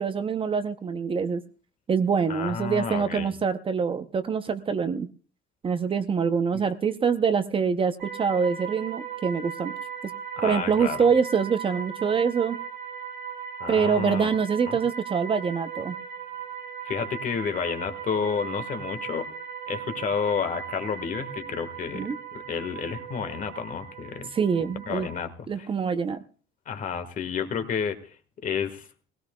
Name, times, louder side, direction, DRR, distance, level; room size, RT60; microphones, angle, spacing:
voice 1, 0.0-1.4 1.9-5.1 5.6-9.7 10.4-12.6 13.7-15.9 21.9-22.2 24.3-25.1 25.5-26.2, right 6 dB, 30° right, 10 dB, 0.6 m, -25 dB
voice 2, 2.3-3.3 6.5-6.6 10.4-11.1 13.6-14.3 14.7-14.8 16.8-19.3 19.7-24.3 24.9-25.7 26.7-28.0 28.4-28.9, left 6 dB, 45° left, 10 dB, 1.4 m, -31 dB
sound 1, 8.0-25.2, right 7 dB, 60° right, 2.9 m, -38 dB
20.0 x 17.0 x 2.2 m, 0.39 s
cardioid pair, 130°, 19 cm